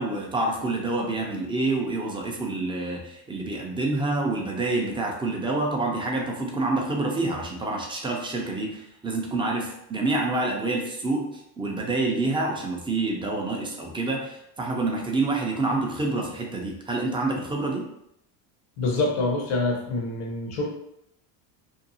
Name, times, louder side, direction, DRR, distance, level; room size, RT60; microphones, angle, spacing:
voice 1, 0.0-17.8, right 2 dB, 10° right, 0 dB, 0.3 m, -27 dB
voice 2, 18.8-20.7, left 2 dB, 75° left, 1 dB, 0.9 m, -26 dB
2.7 x 2.2 x 2.6 m, 0.77 s
supercardioid pair, 90°, 49 cm